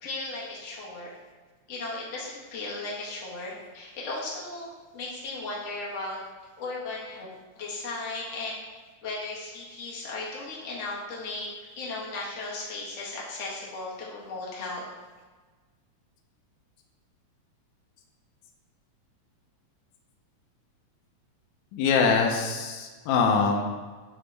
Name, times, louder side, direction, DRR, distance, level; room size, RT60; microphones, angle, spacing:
voice 1, 0.0-1.1 1.7-6.2 6.6-7.3 7.5-8.6 9.0-11.5 11.8-14.8, left 2 dB, 40° left, -5 dB, 1.0 m, -36 dB
voice 2, 21.7-23.6, left 5 dB, 80° left, 1 dB, 2.0 m, -23 dB
8.7 x 4.0 x 3.3 m, 1.3 s
omnidirectional pair, 3.4 m